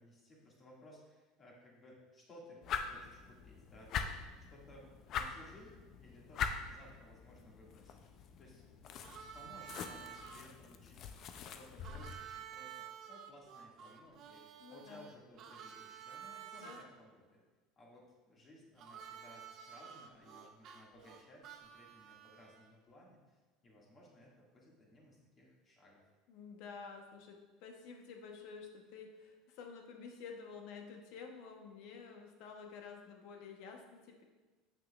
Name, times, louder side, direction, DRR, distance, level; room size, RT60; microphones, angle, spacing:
voice 1, 0.0-11.1 11.5-17.4 17.8-26.0, left 1 dB, 35° left, -3 dB, 2.1 m, -59 dB
sound 1, 2.6-12.1, left 6 dB, 50° left, 0.5 m, -43 dB
Harmonica, 9.0-10.5 11.8-16.8 18.8-22.7, right 8 dB, 50° right, 0.6 m, -51 dB
voice 2, 14.6-15.1 16.5-16.8 26.3-34.2, left 5 dB, 65° left, 3 dB, 1.0 m, -50 dB
7.6 x 5.9 x 2.4 m, 1.3 s
supercardioid pair, 100°, 0 cm